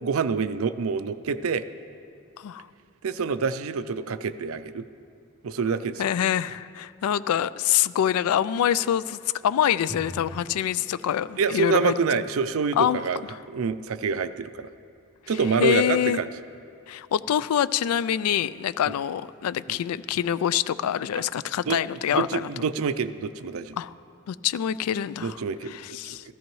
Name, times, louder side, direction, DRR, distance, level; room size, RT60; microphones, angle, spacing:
voice 1, 0.0-1.6 3.0-4.9 5.4-6.1 11.4-13.2 13.5-14.7 15.3-16.3 18.9-19.0 19.7-19.8 21.7-21.8 22.1-23.8 25.2-26.3, right 5 dB, 75° right, 12 dB, 0.4 m, -27 dB
voice 2, 6.0-12.2 12.8-13.0 15.6-16.2 16.9-22.5 23.8-23.9 24.3-25.4 25.7-26.3, left 9 dB, 85° left, 17 dB, 0.3 m, -25 dB
Drum, 9.9-13.4, equal, ahead, 0.7 m, -45 dB
15.0 x 13.5 x 3.1 m, 2.4 s
head